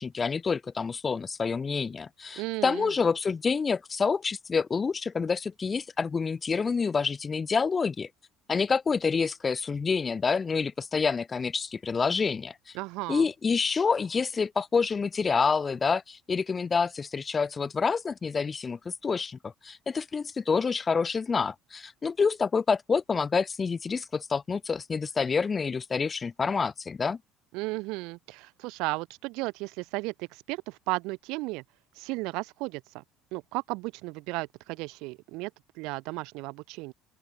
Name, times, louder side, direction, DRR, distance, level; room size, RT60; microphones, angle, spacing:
voice 1, 0.0-8.1 8.5-12.5 13.1-27.2, left 5 dB, 25° left, 0.5 m, -27 dB
voice 2, 2.4-2.9 12.7-13.3 27.5-31.6 32.0-33.0 33.3-36.9, right 24 dB, 80° right, 1.0 m, -34 dB
open air
cardioid pair, 130°, 0 cm